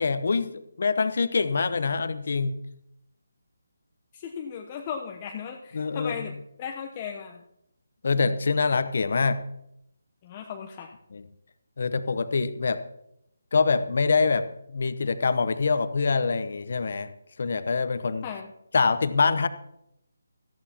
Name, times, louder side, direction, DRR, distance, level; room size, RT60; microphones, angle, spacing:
voice 1, 0.0-2.5 5.7-6.3 8.0-9.4 11.1-11.2 11.8-12.8 13.5-17.1 17.4-18.2 18.7-19.5, left 4 dB, 60° left, 12 dB, 0.9 m, -25 dB
voice 2, 4.1-6.3 6.6-7.4 10.2-10.9 18.2-18.5, left 7 dB, 25° left, 2 dB, 0.8 m, -36 dB
18.0 x 14.0 x 2.9 m, 0.81 s
figure-of-eight pair, 160°, 0 cm